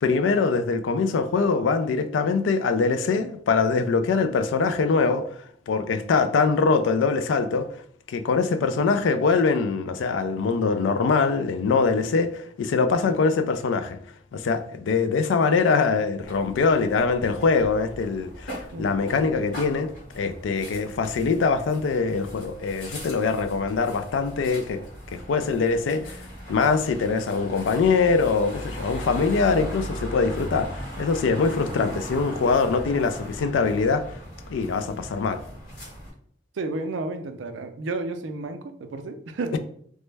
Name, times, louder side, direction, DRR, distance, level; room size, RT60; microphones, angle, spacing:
voice 1, 0.0-5.3 5.7-7.7 8.1-14.0 14.3-19.9 20.1-24.8 25.1-26.2 26.5-34.0 34.5-35.4 39.5-39.6, left 4 dB, 85° left, 0.3 m, -23 dB
sound 1, 16.2-36.1, equal, 45° left, 1.5 m, -39 dB
voice 2, 36.5-39.6, right 3 dB, 85° right, 0.4 m, -32 dB
3.1 x 2.1 x 3.2 m
head